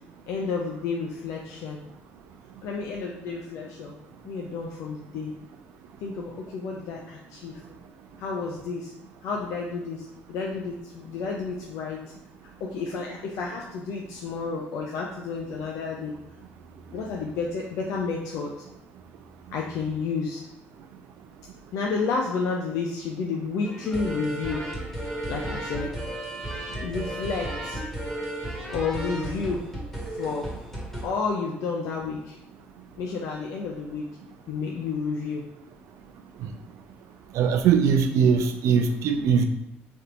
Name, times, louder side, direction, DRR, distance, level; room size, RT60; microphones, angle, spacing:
voice 1, 0.3-1.8 2.6-4.0 4.2-5.3 6.0-7.6 8.2-8.9 9.2-12.0 12.6-16.2 16.9-18.5 19.5-20.4 21.7-24.6 25.3-25.9 26.8-27.8 28.7-29.7 30.1-30.6 31.0-32.4 33.0-34.1 34.5-35.5, left 4 dB, 75° left, -1 dB, 0.4 m, -31 dB
sound 1, 23.6-31.0, right 1 dB, 5° left, 1.3 m, -34 dB
voice 2, 37.3-39.5, right 6 dB, 75° right, 6 dB, 0.4 m, -21 dB
3.4 x 2.8 x 2.4 m, 0.92 s
supercardioid pair, 65°, 5 cm